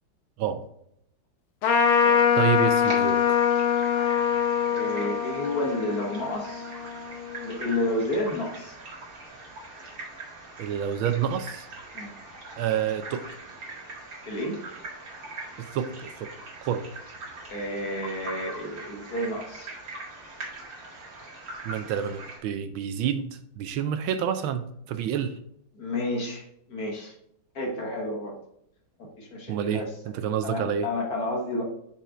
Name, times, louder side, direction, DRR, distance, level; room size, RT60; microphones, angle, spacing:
Trumpet, 1.6-7.4, left 8 dB, 80° left, 1.7 m, -24 dB
voice 1, 2.4-3.5 10.6-11.7 12.6-13.2 15.6-16.3 16.7-16.9 20.9-21.1 21.6-25.4 29.5-30.9, right 8 dB, 80° right, 10 dB, 1.3 m, -28 dB
sound 1, 2.7-22.4, right 2 dB, 60° right, 2.6 m, -42 dB
voice 2, 4.6-6.7 7.4-8.8 11.9-12.1 14.2-14.6 17.5-19.7 25.7-27.1 27.6-28.4 29.2-29.9 30.4-31.6, left 1 dB, 50° left, -1 dB, 1.8 m, -31 dB
5.7 x 5.4 x 3.7 m, 0.73 s
omnidirectional pair, 2.3 m